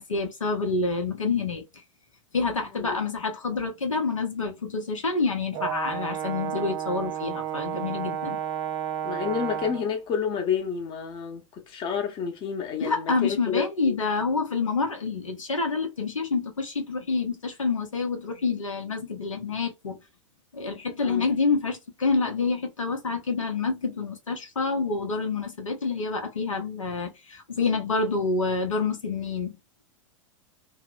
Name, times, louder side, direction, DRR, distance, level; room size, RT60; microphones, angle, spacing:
voice 1, 0.0-1.6 2.3-8.4 12.8-20.0 20.5-29.6, left 4 dB, 80° left, 0.7 m, -27 dB
voice 2, 2.4-3.0 9.0-13.9 21.0-21.3, left 7 dB, 30° left, 0.8 m, -30 dB
Brass instrument, 5.5-9.9, right 9 dB, 30° right, 0.4 m, -32 dB
2.8 x 2.0 x 2.4 m
figure-of-eight pair, 95°, 17 cm